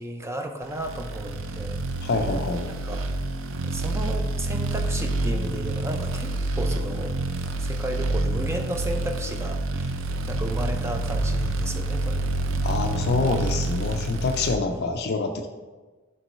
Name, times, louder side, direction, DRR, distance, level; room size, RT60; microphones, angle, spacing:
voice 1, 0.0-1.8 2.7-3.1 3.6-7.1 7.6-10.0 10.3-12.2 14.7-15.0, right 1 dB, 15° right, 5 dB, 0.4 m, -33 dB
sound 1, 0.8-14.5, right 2 dB, 70° right, 0.5 m, -28 dB
voice 2, 2.0-2.7 12.6-15.5, left 3 dB, 50° left, 4 dB, 0.4 m, -26 dB
5.9 x 3.0 x 5.5 m, 1.3 s
head